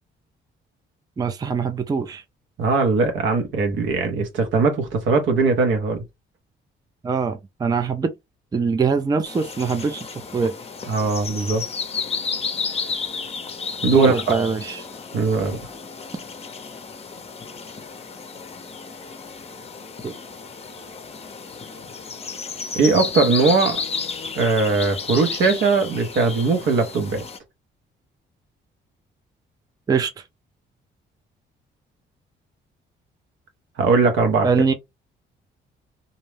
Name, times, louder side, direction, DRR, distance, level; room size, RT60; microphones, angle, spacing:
voice 1, 1.2-2.2 7.0-8.1 8.5-10.1 10.3-10.5 13.8-14.8 20.0-20.1 29.9-30.1 34.4-34.7, right 5 dB, 20° right, 0.4 m, -23 dB
voice 2, 2.6-6.0 10.9-11.6 13.8-14.3 15.1-15.7 22.7-23.8 24.4-27.2 33.8-34.5, right 4 dB, 75° right, 1.0 m, -20 dB
sound 1, 9.2-27.4, left 5 dB, 30° left, 0.6 m, -32 dB
2.6 x 2.1 x 3.2 m
cardioid pair, 90°, 20 cm